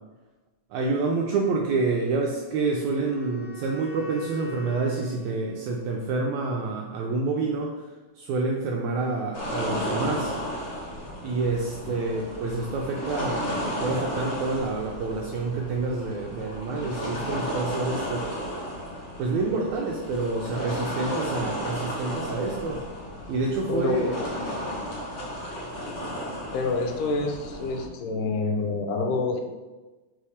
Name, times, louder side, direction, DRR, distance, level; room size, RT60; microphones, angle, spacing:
voice 1, 0.7-7.9 8.2-10.3 11.2-18.3 19.2-22.8 23.3-24.3, right 3 dB, 85° right, 0 dB, 1.7 m, -28 dB
Wind instrument woodwind instrument, 2.2-6.3, right 1 dB, 20° right, 0.5 m, -45 dB
sound 1, 9.3-27.9, equal, 55° left, 1.3 m, -33 dB
voice 2, 23.7-24.3 26.5-29.4, left 3 dB, 85° left, 4 dB, 2.2 m, -27 dB
5.6 x 3.4 x 4.9 m, 1.2 s
omnidirectional pair, 3.9 m